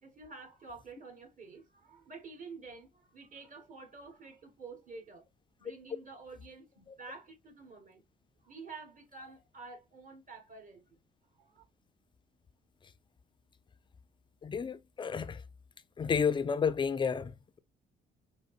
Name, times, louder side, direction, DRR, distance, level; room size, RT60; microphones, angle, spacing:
voice 1, 0.0-5.3 5.6-8.0 8.4-11.0 11.4-11.6, right 4 dB, 40° right, 1.5 m, -49 dB
voice 2, 14.4-15.4 16.0-17.6, left 6 dB, 25° left, 0.4 m, -31 dB
5.0 x 2.1 x 2.3 m
cardioid pair, 90°, 20 cm